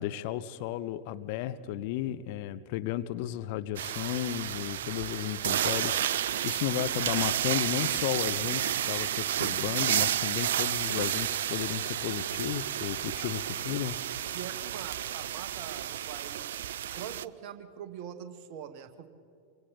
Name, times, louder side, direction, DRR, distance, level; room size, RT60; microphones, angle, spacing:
voice 1, 0.0-14.0, left 13 dB, 45° left, 12 dB, 0.7 m, -34 dB
sound 1, 3.8-17.3, right 11 dB, 60° right, 0.4 m, -31 dB
voice 2, 14.3-16.5 16.9-19.1, right 9 dB, 45° right, 9 dB, 1.5 m, -43 dB
26.0 x 24.5 x 4.2 m, 2.7 s
figure-of-eight pair, 90°, 0 cm